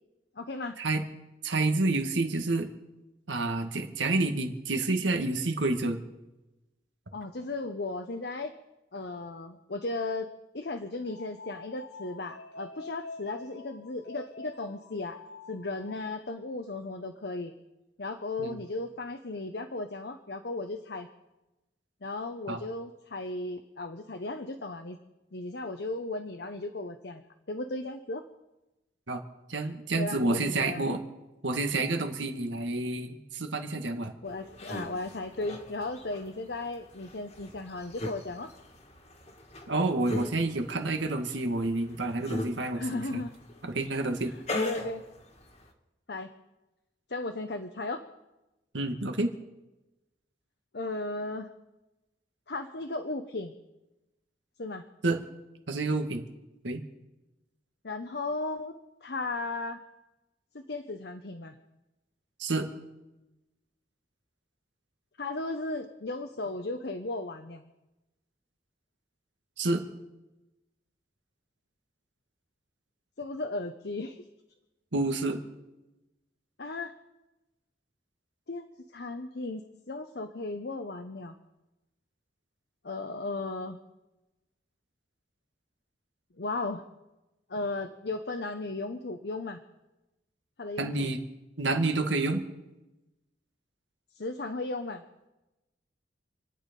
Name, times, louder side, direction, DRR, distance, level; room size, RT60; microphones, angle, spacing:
voice 1, 0.4-0.8 7.1-8.6 8.9-15.2 15.5-17.5 18.0-21.1 22.0-25.0 25.3-27.2 27.5-28.2 30.0-30.9 34.2-38.5 42.7-43.3 44.5-45.0 46.1-46.3 47.1-48.0 50.7-51.5 52.5-53.5 54.6-54.8 57.8-58.7 59.0-59.8 60.5-61.5 65.2-67.6 73.2-74.2 76.6-76.9 78.5-78.6 78.9-81.3 82.8-83.8 86.4-86.8 87.5-89.6 90.6-91.1 94.1-95.0, left 2 dB, 60° left, 7 dB, 0.9 m, -35 dB
voice 2, 1.4-2.7 3.3-6.0 18.4-18.6 22.5-22.6 29.1-29.2 29.5-31.0 31.4-34.2 39.7-43.2 43.6-44.3 48.7-49.3 55.0-55.2 55.7-56.2 56.6-56.8 62.4-62.7 69.6-69.8 74.9-75.4 90.8-91.2 91.6-92.4, right 2 dB, 90° right, 5 dB, 1.9 m, -29 dB
sound 1, 11.0-16.3, left 3 dB, 90° left, 5.5 m, -47 dB
sound 2, 34.2-45.7, left 2 dB, 35° left, 1.8 m, -40 dB
28.0 x 9.4 x 5.4 m, 1.0 s
head